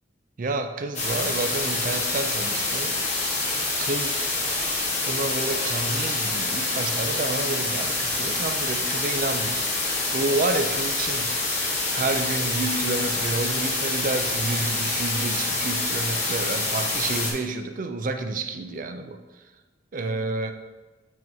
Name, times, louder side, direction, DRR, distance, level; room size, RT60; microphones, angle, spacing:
voice 1, 0.4-3.0 3.8-4.3 5.0-9.6 10.1-11.3 11.9-19.2 19.9-20.5, right 2 dB, 50° right, 7 dB, 0.5 m, -29 dB
sound 1, 0.9-17.3, left 2 dB, 40° left, 1.7 m, -26 dB
7.6 x 3.1 x 5.3 m, 1.3 s
head